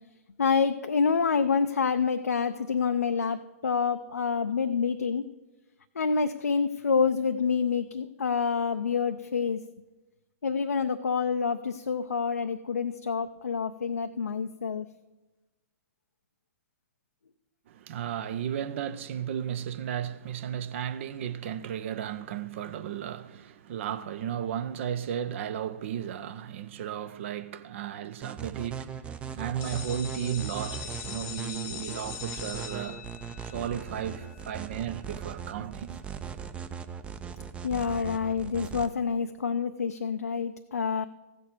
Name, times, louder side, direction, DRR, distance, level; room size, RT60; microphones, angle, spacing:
voice 1, 0.4-5.2 6.0-9.6 10.4-14.9 37.6-41.1, left 5 dB, 75° left, 0.5 m, -27 dB
voice 2, 17.7-33.0 33.4-36.0, right 9 dB, 50° right, 0.7 m, -34 dB
sound 1, 28.2-38.9, right 7 dB, 15° right, 0.6 m, -39 dB
sound 2, 29.6-35.3, left 9 dB, 25° left, 0.9 m, -42 dB
15.0 x 6.8 x 6.0 m
figure-of-eight pair, 110°, 8 cm